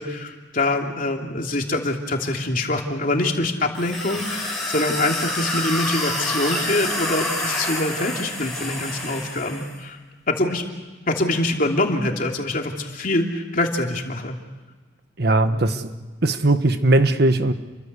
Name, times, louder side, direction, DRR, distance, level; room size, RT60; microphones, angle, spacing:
voice 1, 0.0-10.0 10.3-10.6 11.1-14.4 15.4-15.6, left 2 dB, 45° left, 2 dB, 3.0 m, -24 dB
sound 1, 3.8-9.7, left 1 dB, 5° left, 7.5 m, -27 dB
voice 2, 15.2-15.9 16.2-17.5, right 2 dB, 60° right, 9 dB, 1.3 m, -19 dB
30.0 x 24.0 x 6.9 m, 1.3 s
head